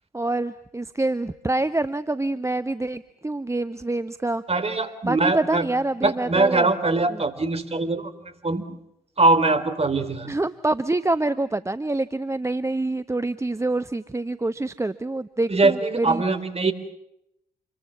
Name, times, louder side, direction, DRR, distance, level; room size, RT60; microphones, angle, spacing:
voice 1, 0.1-4.4 5.0-6.7 10.3-16.2, right 2 dB, 15° right, 12 dB, 1.1 m, -26 dB
voice 2, 4.5-5.7 6.0-8.8 9.2-10.3 15.5-16.7, right 3 dB, 30° right, 10 dB, 3.9 m, -22 dB
27.5 x 23.0 x 7.3 m, 0.80 s
hypercardioid pair, 45°, 20 cm